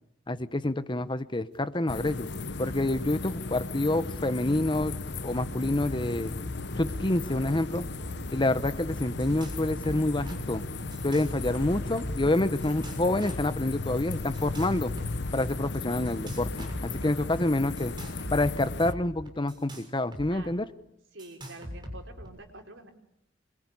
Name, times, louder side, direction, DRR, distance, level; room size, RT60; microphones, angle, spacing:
voice 1, 0.3-2.3 2.6-5.0 5.2-6.3 6.8-7.8 8.3-10.6 11.0-14.9 15.3-17.9 18.3-20.6, left 2 dB, 25° left, 13 dB, 1.0 m, -27 dB
sound 1, 1.5-13.8 14.1-16.9, equal, 60° right, 2.2 m, -46 dB
sound 2, 1.9-18.9, left 3 dB, 60° left, 1.1 m, -36 dB
sound 3, 8.6-8.7 9.0-9.6 9.8-10.4 10.9-12.3 12.6-13.5 14.3-15.6 16.1-17.1 17.8-20.3 20.5-20.6 21.2-22.3, equal, 25° right, 6.8 m, -41 dB
voice 2, 21.1-22.9, right 2 dB, 75° right, 5 dB, 4.5 m, -46 dB
26.5 x 22.5 x 9.9 m, 0.82 s
head